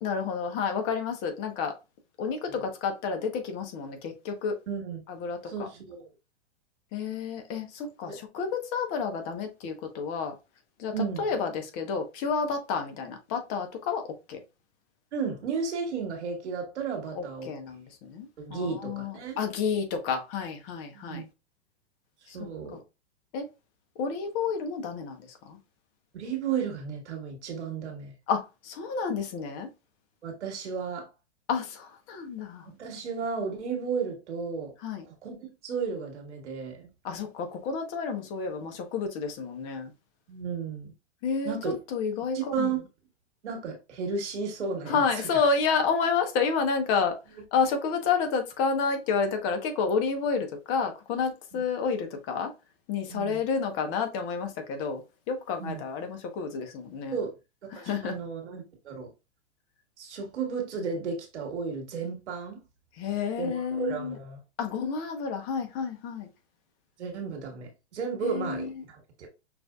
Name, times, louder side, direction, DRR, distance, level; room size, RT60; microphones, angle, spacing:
voice 1, 0.0-1.8 2.2-4.6 5.1-5.7 6.9-10.3 10.8-14.0 14.3-14.4 17.1-21.3 22.3-22.8 23.3-23.5 24.0-25.6 28.3-29.7 31.5-32.7 34.8-35.1 37.0-39.9 41.2-42.7 44.9-52.5 52.9-57.2 57.7-58.2 63.0-64.2 64.6-66.3 68.2-68.7, left 5 dB, 40° left, 1.0 m, -30 dB
voice 2, 4.7-5.0 5.5-6.1 8.1-8.2 10.9-11.2 15.1-17.5 18.4-19.4 20.9-21.2 22.3-22.8 26.1-28.1 30.2-31.1 32.7-34.7 35.2-36.9 40.3-40.9 41.4-41.8 42.3-42.8 43.4-45.3 51.5-51.6 53.1-53.4 55.6-55.8 57.1-57.3 57.8-59.1 60.0-62.6 63.4-64.4 67.0-69.3, right 5 dB, 80° right, 1.7 m, -33 dB
5.9 x 2.6 x 2.3 m
hypercardioid pair, 115°, 34 cm